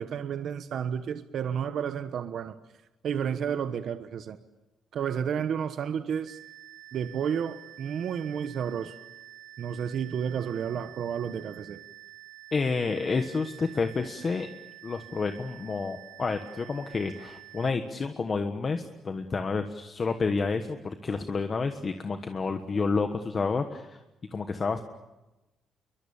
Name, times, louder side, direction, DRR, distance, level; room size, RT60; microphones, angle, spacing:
voice 1, 0.0-2.6 3.0-4.4 4.9-6.4 6.9-9.0 9.6-11.8, right 8 dB, 60° right, 10 dB, 1.2 m, -31 dB
sound 1, 6.3-17.7, right 16 dB, 80° right, 1.7 m, -49 dB
voice 2, 12.5-14.5 14.8-24.0 24.3-24.8, left 4 dB, 30° left, 7 dB, 1.3 m, -29 dB
29.5 x 23.0 x 7.2 m, 1.0 s
cardioid pair, 155°, 0 cm